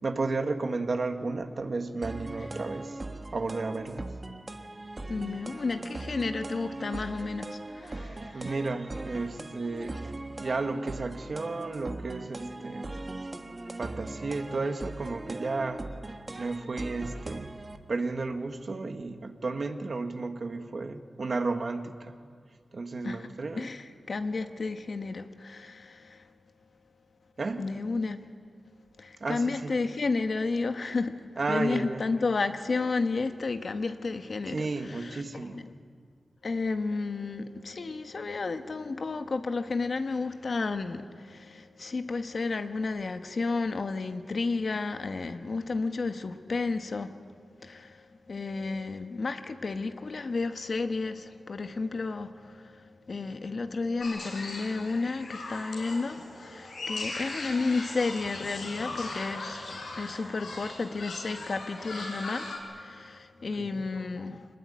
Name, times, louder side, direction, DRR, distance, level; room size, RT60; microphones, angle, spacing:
voice 1, 0.0-3.0 3.3-4.1 7.9-10.1 10.4-12.9 13.8-15.8 16.4-17.5 17.9-22.1 22.7-23.7 27.4-27.7 29.2-29.7 31.4-32.1 34.5-35.6 63.6-63.8, right 3 dB, 50° right, 1.6 m, -33 dB
sound 1, 2.0-17.8, right 2 dB, 30° right, 1.4 m, -40 dB
voice 2, 5.1-8.5 23.0-23.3 23.5-26.2 27.6-28.2 29.0-31.2 31.5-35.2 35.5-35.7 36.4-47.1 47.6-48.0 48.3-52.8 53.1-64.5, left 3 dB, 55° left, 1.3 m, -32 dB
sound 2, 54.0-62.6, left 2 dB, 75° left, 6.3 m, -39 dB
25.0 x 20.0 x 9.9 m
wide cardioid pair, 115°, 0 cm